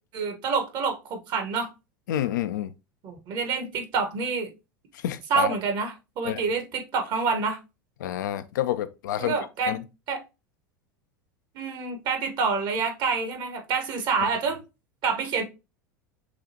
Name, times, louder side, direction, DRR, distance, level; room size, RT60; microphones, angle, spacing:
voice 1, 0.1-1.7 3.0-4.5 5.3-7.6 9.2-10.2 11.5-14.6 15.0-15.4, right 5 dB, 45° right, 1.2 m, -27 dB
voice 2, 2.1-2.7 4.9-5.5 6.2-6.4 8.0-9.4 9.7-9.8, left 12 dB, 70° left, 0.4 m, -28 dB
6.3 x 2.4 x 2.8 m
figure-of-eight pair, 80°, 11 cm